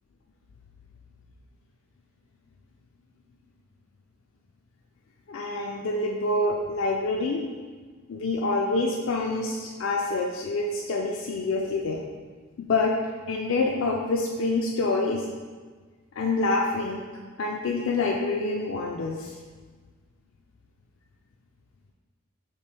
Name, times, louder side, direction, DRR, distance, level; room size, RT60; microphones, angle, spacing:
voice 1, 5.3-7.4 8.1-12.0 12.6-12.9 13.3-15.3 16.2-17.0 17.4-19.3, left 3 dB, 60° left, 0 dB, 0.4 m, -26 dB
4.6 x 2.9 x 3.3 m, 1.5 s
head